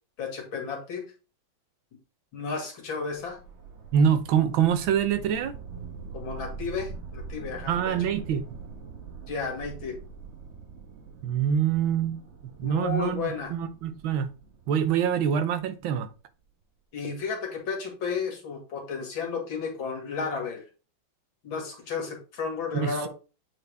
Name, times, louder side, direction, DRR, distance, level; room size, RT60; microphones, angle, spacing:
voice 1, 0.2-1.0 2.3-3.4 6.1-8.0 9.3-10.0 12.6-13.5 16.9-20.6 21.4-23.1, left 5 dB, 85° left, 2.7 m, -33 dB
sound 1, 3.1-16.2, right 5 dB, 40° right, 1.2 m, -43 dB
voice 2, 3.9-5.5 7.7-8.4 11.2-12.2 12.6-14.3 14.7-16.1 22.7-23.1, right 8 dB, 90° right, 1.6 m, -25 dB
8.2 x 4.2 x 3.4 m
omnidirectional pair, 2.1 m